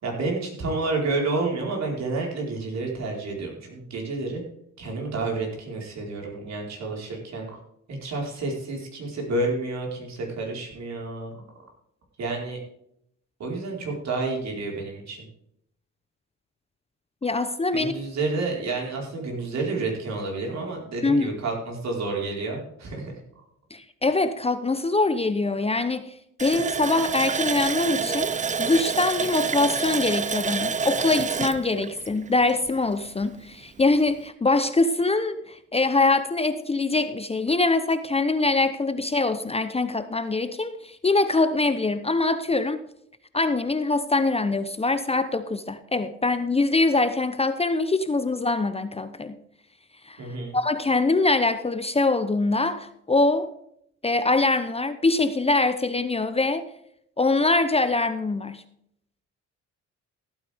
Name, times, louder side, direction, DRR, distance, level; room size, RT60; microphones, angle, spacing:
voice 1, 0.0-4.4 4.8-7.5 7.9-11.4 12.2-12.6 13.4-15.3 17.7-23.4 50.2-50.6, right 3 dB, 60° right, 4.6 m, -30 dB
voice 2, 17.2-17.9 21.0-21.3 23.7-28.3 28.6-42.8 43.3-49.4 50.0-53.5 54.0-56.7 57.2-58.6, left 3 dB, 20° left, 0.8 m, -23 dB
Water tap faucet, 26.4-32.9 33.2-33.3 33.8-33.9, right 5 dB, 25° right, 0.5 m, -28 dB
15.5 x 9.0 x 3.5 m
cardioid pair, 90°, 30 cm